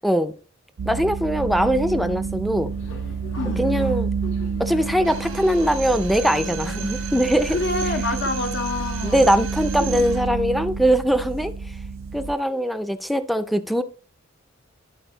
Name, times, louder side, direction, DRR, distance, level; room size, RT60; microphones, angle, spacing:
voice 1, 0.8-2.7 3.6-4.1 4.6-7.6 9.0-11.5 12.1-13.8, equal, ahead, 0.4 m, -21 dB
sound 1, 0.8-12.3, right 5 dB, 70° right, 0.4 m, -29 dB
Subway metro underground, 2.4-8.1, left 2 dB, 85° left, 1.2 m, -41 dB
voice 2, 3.4-3.7 7.5-9.3 9.9-10.1, left 3 dB, 60° left, 0.6 m, -27 dB
Drill, 5.0-10.3, right 10 dB, 85° right, 1.2 m, -36 dB
10.0 x 4.2 x 3.9 m
head